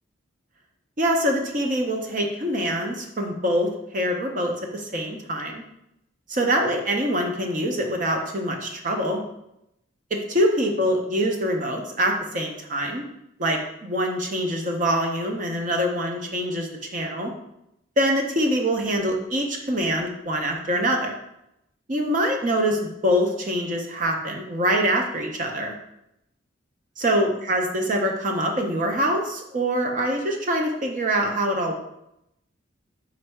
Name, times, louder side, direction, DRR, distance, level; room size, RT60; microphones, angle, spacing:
voice 1, 1.0-5.6 6.3-9.2 10.1-13.0 13.4-17.3 18.0-21.1 21.9-25.7 27.0-31.8, equal, 40° right, 2 dB, 0.6 m, -24 dB
4.3 x 2.6 x 4.5 m, 0.83 s
head